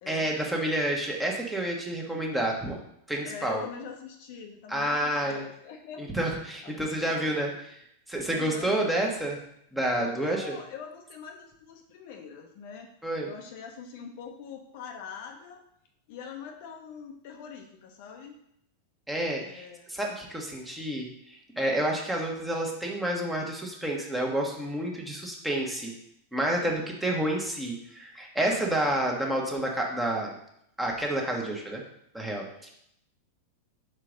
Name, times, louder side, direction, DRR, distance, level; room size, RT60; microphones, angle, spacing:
voice 1, 0.1-2.8 3.1-3.6 4.7-5.4 6.0-7.5 8.1-9.4 9.7-10.6 13.0-13.3 19.1-25.9 26.3-30.3 30.8-31.8 32.1-32.7, right 1 dB, 5° right, -1 dB, 1.3 m, -29 dB
voice 2, 3.2-6.1 6.6-7.6 8.3-8.7 10.0-12.9 13.2-15.6 16.1-18.3 19.4-19.9 26.5-27.0 28.5-29.0, left 6 dB, 50° left, 3 dB, 0.8 m, -44 dB
5.0 x 4.5 x 5.1 m, 0.74 s
figure-of-eight pair, 90°, 0 cm